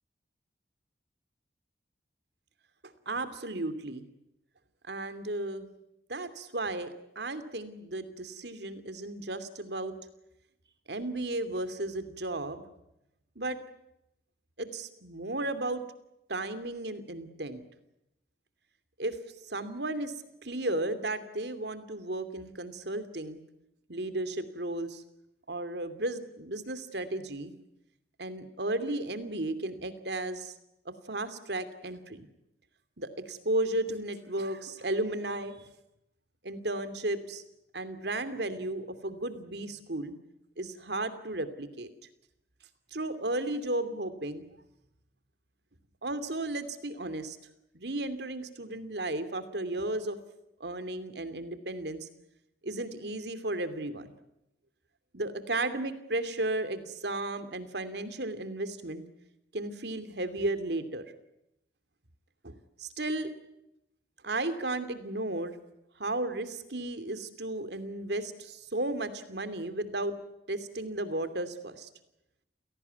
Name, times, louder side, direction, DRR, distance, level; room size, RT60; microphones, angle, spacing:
voice 1, 2.8-4.0 4.9-5.7 6.1-9.9 10.9-12.6 13.4-13.6 14.6-15.8 16.3-17.6 19.0-19.2 19.5-20.1 20.4-23.4 23.9-25.0 25.5-27.5 28.2-30.5 31.1-32.3 33.0-35.7 36.4-37.4 37.7-40.1 40.6-41.9 42.9-44.5 46.0-47.4 47.7-50.2 50.6-52.1 52.6-54.1 55.1-59.0 59.5-61.1 62.4-62.5 62.8-63.3 64.2-65.6 66.0-70.1 70.5-71.9, right 2 dB, 70° right, 11 dB, 2.7 m, -34 dB
29.0 x 18.0 x 9.5 m, 0.86 s
head